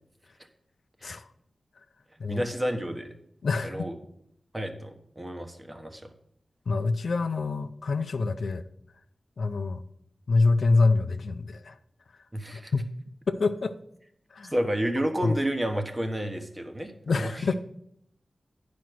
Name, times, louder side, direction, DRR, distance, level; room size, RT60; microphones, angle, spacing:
voice 1, 2.3-3.1 3.6-3.9 4.5-6.1 12.3-12.7 14.5-17.4, right 1 dB, 25° right, 6 dB, 1.3 m, -30 dB
voice 2, 3.4-3.9 6.7-8.6 9.4-9.8 10.3-11.8 12.7-12.9 13.3-13.7 14.3-14.5 15.2-15.4 17.1-17.5, left 3 dB, 85° left, 10 dB, 0.5 m, -26 dB
9.3 x 5.2 x 6.1 m, 0.74 s
wide cardioid pair, 60°, 0 cm